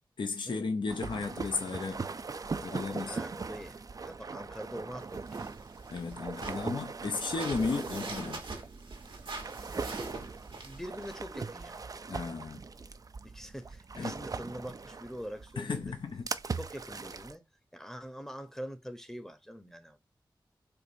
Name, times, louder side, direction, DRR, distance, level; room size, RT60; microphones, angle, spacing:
voice 1, 0.2-2.1 2.6-3.2 5.9-8.4 12.1-12.6 14.0-14.2 15.6-16.2, left 4 dB, 65° left, 0.5 m, -34 dB
sound 1, 0.9-17.4, right 4 dB, 45° right, 0.3 m, -40 dB
voice 2, 3.0-5.5 6.5-6.7 7.7-8.0 10.6-11.9 13.2-16.0 16.5-17.5 17.7-20.0, equal, 5° left, 0.7 m, -44 dB
sound 2, 5.0-11.2, right 3 dB, 80° right, 1.0 m, -44 dB
4.5 x 2.5 x 2.6 m
cardioid pair, 40°, 9 cm